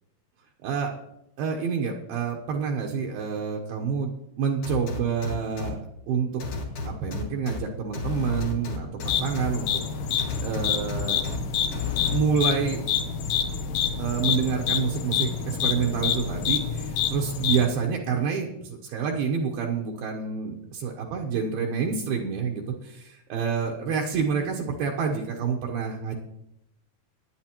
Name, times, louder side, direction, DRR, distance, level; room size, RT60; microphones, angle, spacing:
voice 1, 1.4-4.1 4.4-5.8 6.1-6.4 6.9-9.8 10.4-11.2 12.0-12.8 14.0-26.1, right 6 dB, 75° right, -1 dB, 2.5 m, -28 dB
sound 1, 4.6-5.7 6.4-7.6 7.9-9.5 10.2-11.4 11.7-12.2, left 3 dB, 55° left, 2.9 m, -32 dB
sound 2, 9.0-17.7, left 8 dB, 75° left, 2.0 m, -27 dB
21.0 x 8.9 x 3.0 m, 0.83 s
omnidirectional pair, 4.8 m